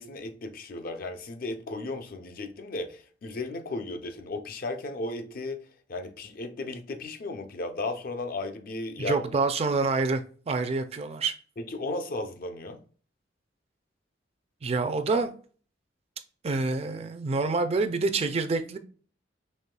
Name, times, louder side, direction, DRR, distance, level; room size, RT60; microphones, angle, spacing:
voice 1, 0.0-5.6 5.9-9.2 11.6-12.8, left 2 dB, 55° left, 0.5 m, -35 dB
voice 2, 9.0-11.3 14.6-15.3 16.4-18.8, right 3 dB, 35° right, 0.4 m, -27 dB
5.5 x 3.1 x 2.2 m
head